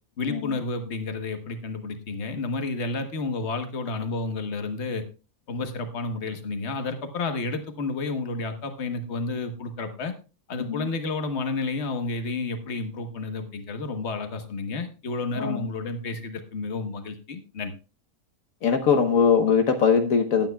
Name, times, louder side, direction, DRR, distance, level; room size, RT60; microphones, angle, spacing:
voice 1, 0.2-5.0 5.5-10.1 10.5-17.7, left 3 dB, 55° left, 7 dB, 1.5 m, -31 dB
voice 2, 10.6-10.9 15.4-15.6 18.6-20.5, left 6 dB, 80° left, 5 dB, 1.5 m, -21 dB
17.5 x 9.2 x 2.3 m, 0.32 s
omnidirectional pair, 1.4 m